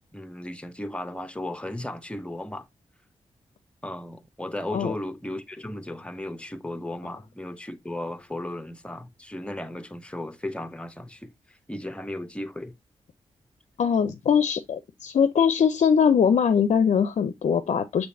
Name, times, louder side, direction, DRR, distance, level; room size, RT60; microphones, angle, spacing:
voice 1, 0.1-2.7 3.8-12.8, left 1 dB, 10° left, 0.7 m, -35 dB
voice 2, 13.8-18.1, left 7 dB, 65° left, 0.4 m, -21 dB
6.3 x 2.9 x 2.6 m
cardioid pair, 50°, 12 cm